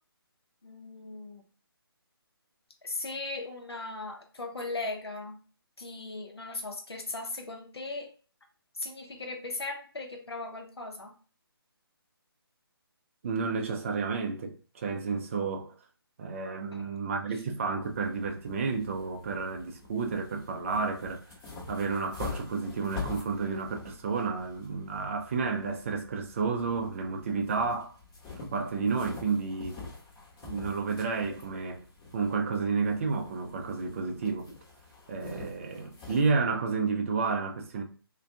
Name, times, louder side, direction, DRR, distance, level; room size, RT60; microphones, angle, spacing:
voice 1, 0.6-1.4 2.8-5.4 5.8-8.1 8.7-11.1 16.7-16.9, left 2 dB, 80° left, 0.7 m, -38 dB
voice 2, 13.2-15.7 16.2-21.2 21.7-27.9 28.4-29.8 30.4-31.8 32.1-34.5 35.1-37.8, right 4 dB, 35° right, 0.4 m, -31 dB
sound 1, 17.8-36.3, left 4 dB, 25° left, 0.9 m, -46 dB
2.4 x 2.2 x 2.5 m
figure-of-eight pair, 145°, 13 cm